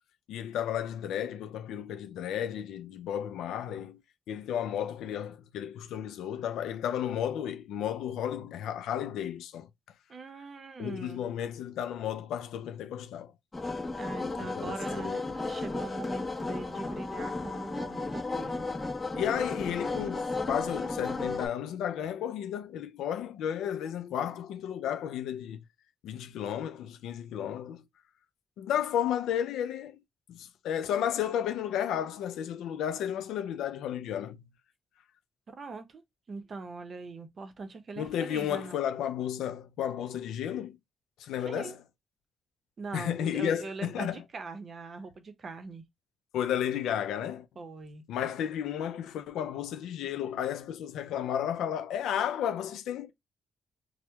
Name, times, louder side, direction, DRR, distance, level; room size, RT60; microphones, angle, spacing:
voice 1, 0.3-4.0 4.3-9.7 10.8-13.3 14.4-15.2 19.2-25.6 26.0-27.8 28.6-30.0 30.3-34.5 38.0-40.8 41.2-41.8 42.9-44.2 46.3-47.5 48.1-53.1, left 9 dB, 90° left, 0.3 m, -33 dB
voice 2, 10.1-11.2 14.0-18.6 35.5-36.0 36.3-38.8 41.4-41.8 42.8-45.8 47.6-48.0, right 3 dB, 45° right, 0.6 m, -41 dB
sound 1, 13.5-21.5, left 3 dB, 20° left, 1.0 m, -34 dB
4.4 x 2.0 x 2.2 m
cardioid pair, 90°, 0 cm